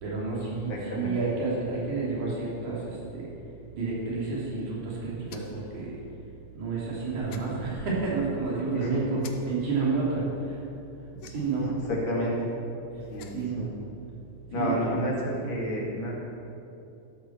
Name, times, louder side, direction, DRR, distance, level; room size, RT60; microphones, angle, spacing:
voice 1, 0.0-3.3 3.7-6.0 6.5-9.2 9.4-10.6 11.3-11.7 12.9-13.0 13.3-13.7 14.5-15.1, right 4 dB, 70° right, -5 dB, 4.4 m, -30 dB
voice 2, 0.7-1.2 8.7-9.1 11.2-12.5 13.1-13.7 14.5-16.1, equal, 40° left, -4 dB, 2.9 m, -31 dB
sound 1, 5.3-5.7 7.3-7.5 9.2-9.4 11.2-11.7 13.0-13.5, left 6 dB, 70° left, 1.7 m, -47 dB
13.5 x 13.0 x 4.6 m, 2.8 s
omnidirectional pair, 3.7 m